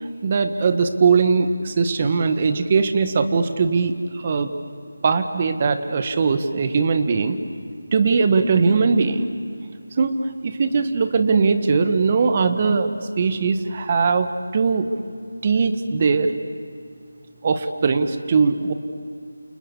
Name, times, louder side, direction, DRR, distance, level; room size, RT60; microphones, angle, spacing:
voice 1, 0.2-4.5 5.0-7.4 7.9-9.3 10.0-10.2 10.4-12.9 13.2-14.3 14.5-14.9 15.4-16.4 17.4-18.7, right 5 dB, 35° right, 8 dB, 1.6 m, -20 dB
29.5 x 28.5 x 7.1 m, 2.3 s
figure-of-eight pair, 165°, 0 cm